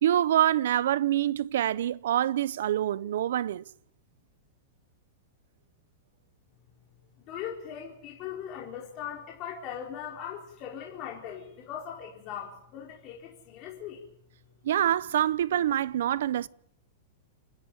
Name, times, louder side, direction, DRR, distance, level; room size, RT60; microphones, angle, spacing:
voice 1, 0.0-3.6 14.6-16.5, right 11 dB, 75° right, 0.7 m, -26 dB
voice 2, 7.2-14.0, left 9 dB, 35° left, 4.5 m, -39 dB
29.5 x 11.0 x 9.2 m
supercardioid pair, 155°, 0 cm